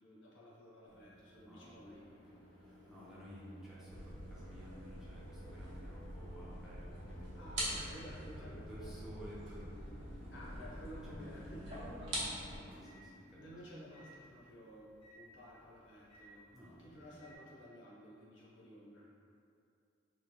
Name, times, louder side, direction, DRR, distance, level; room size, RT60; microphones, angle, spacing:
voice 1, 0.0-2.0 7.3-8.7 10.3-11.9 12.7-13.0 13.4-16.5 16.8-19.1, equal, 70° left, -6 dB, 0.6 m, -53 dB
Microwave oven, 0.9-17.4, right 1 dB, 30° left, 1.3 m, -57 dB
voice 2, 1.5-1.8 2.6-7.8 8.4-10.5 11.1-11.4 12.1-13.6 16.5-17.2, equal, ahead, -9 dB, 0.4 m, -54 dB
sound 1, 3.9-12.6, right 1 dB, 85° right, 0.8 m, -45 dB
3.0 x 2.3 x 2.6 m, 2.5 s
head